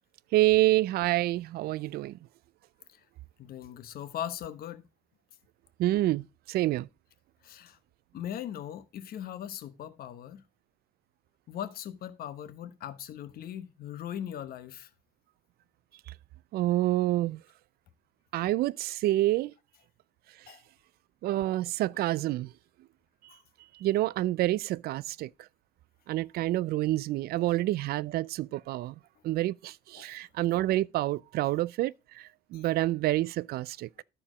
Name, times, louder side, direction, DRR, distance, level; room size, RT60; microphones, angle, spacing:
voice 1, 0.3-2.2 5.8-6.9 16.5-17.4 18.3-19.5 21.2-22.5 23.8-25.3 26.1-28.9 29.2-33.9, right 16 dB, 65° right, 0.4 m, -28 dB
voice 2, 3.4-4.8 7.4-7.8 8.1-10.4 11.5-14.9 20.5-20.6 23.3-23.4 27.4-27.5 30.0-30.1 32.5-32.6 34.0-34.1, left 10 dB, 60° left, 1.0 m, -39 dB
13.0 x 4.4 x 5.0 m
cardioid pair, 110°, 17 cm